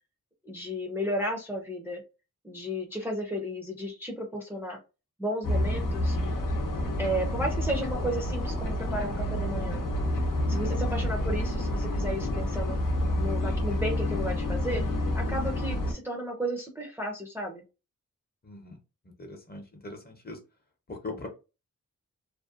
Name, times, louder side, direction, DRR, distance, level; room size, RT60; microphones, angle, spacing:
voice 1, 0.4-2.0 2.4-4.8 5.2-6.2 7.0-9.8 10.5-12.8 13.2-14.8 15.1-17.6, equal, 5° right, 0 dB, 0.5 m, -33 dB
sound 1, 5.4-15.9, left 1 dB, 80° left, 0.8 m, -29 dB
voice 2, 18.4-18.8 19.0-20.4 20.9-21.3, left 3 dB, 30° left, 3 dB, 0.7 m, -41 dB
2.5 x 2.1 x 2.4 m, 0.29 s
wide cardioid pair, 95°, 32 cm